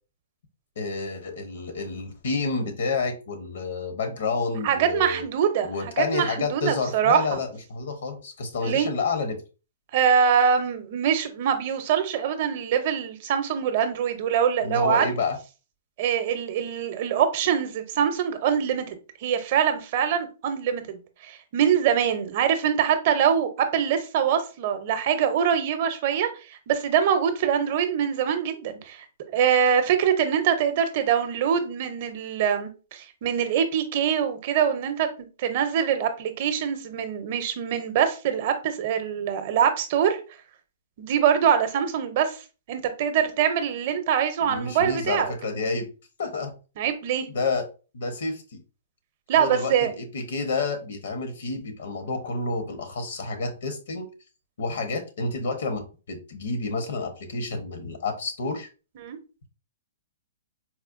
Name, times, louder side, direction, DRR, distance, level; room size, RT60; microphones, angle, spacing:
voice 1, 0.8-5.2 5.6-9.4 14.6-15.4 44.4-45.9 46.2-46.5 47.3-47.7 47.9-48.6 49.4-54.1 54.6-55.8 56.1-58.7, left 4 dB, 75° left, 0.9 m, -29 dB
voice 2, 4.6-7.4 8.6-8.9 9.9-15.0 16.0-18.9 19.2-26.3 26.7-29.1 29.3-35.1 35.4-40.2 41.0-42.4 42.7-45.3 46.8-47.3 49.3-49.9 59.0-59.2, right 8 dB, 45° right, 0.6 m, -24 dB
4.2 x 2.2 x 2.5 m
hypercardioid pair, 150°, 0 cm